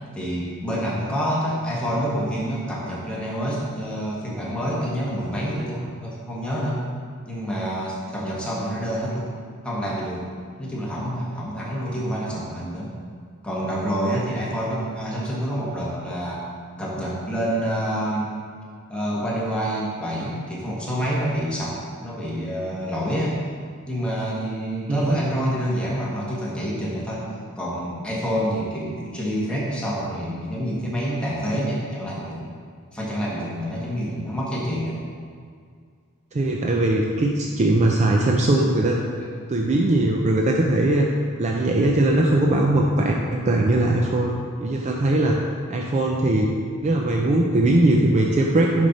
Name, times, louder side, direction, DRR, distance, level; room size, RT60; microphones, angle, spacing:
voice 1, 0.1-6.8 7.3-9.3 9.6-10.3 10.6-12.9 13.4-16.4 16.8-18.3 18.9-23.4 23.9-32.5 32.9-35.0, equal, 5° left, -6 dB, 1.4 m, -27 dB
voice 2, 24.9-25.2 36.3-39.0 39.5-41.1 41.4-44.3 44.6-45.4 45.7-46.5 46.8-48.9, right 1 dB, 30° right, 0 dB, 0.4 m, -20 dB
6.5 x 5.2 x 4.1 m, 2.1 s
head